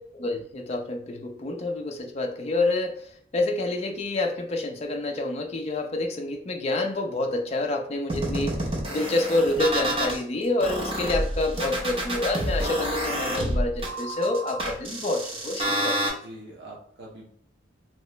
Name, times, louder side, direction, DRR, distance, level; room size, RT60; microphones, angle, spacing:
voice 1, 0.1-8.6 8.9-16.1, left 2 dB, 30° left, 2 dB, 0.3 m, -28 dB
sound 1, 8.1-10.2 10.6-16.1, right 1 dB, 30° right, 0.6 m, -28 dB
voice 2, 16.0-17.3, right 1 dB, 60° right, -3 dB, 0.7 m, -45 dB
2.9 x 2.9 x 3.2 m, 0.62 s
head